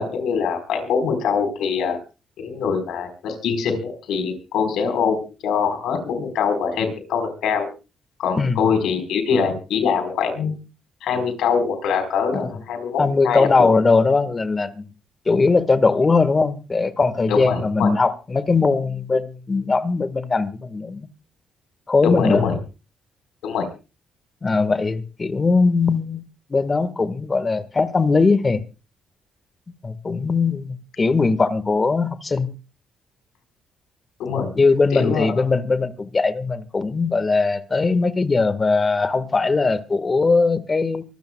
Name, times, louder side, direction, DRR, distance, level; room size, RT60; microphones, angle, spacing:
voice 1, 0.0-2.0 2.4-7.7 8.2-10.6 11.0-13.5 17.3-17.9 22.0-22.6 23.4-23.7 34.2-34.5 34.9-35.4, left 6 dB, 85° left, 4.3 m, -23 dB
voice 2, 13.0-14.8 15.2-21.1 21.9-22.4 24.4-26.2 26.5-28.6 29.8-32.5 34.5-41.0, left 4 dB, 30° left, 1.5 m, -20 dB
24.5 x 15.0 x 2.3 m
cardioid pair, 90°, 0 cm